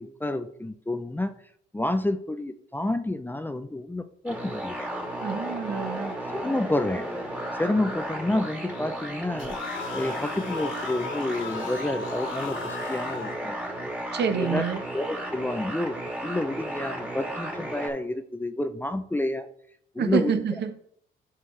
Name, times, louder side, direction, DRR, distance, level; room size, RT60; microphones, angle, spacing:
voice 1, 0.0-1.3 1.7-4.9 6.3-7.0 7.6-9.6 9.9-13.6 14.3-14.6 14.9-16.0 16.2-19.5 19.9-20.4, left 1 dB, 10° left, 0.5 m, -29 dB
sound 1, 4.3-17.9, right 1 dB, 5° right, 1.8 m, -34 dB
voice 2, 5.2-6.2 14.1-14.8 20.0-20.7, right 7 dB, 60° right, 0.8 m, -27 dB
sound 2, 9.4-13.4, left 4 dB, 70° left, 1.3 m, -36 dB
11.0 x 4.5 x 3.2 m
cardioid pair, 90°, 20 cm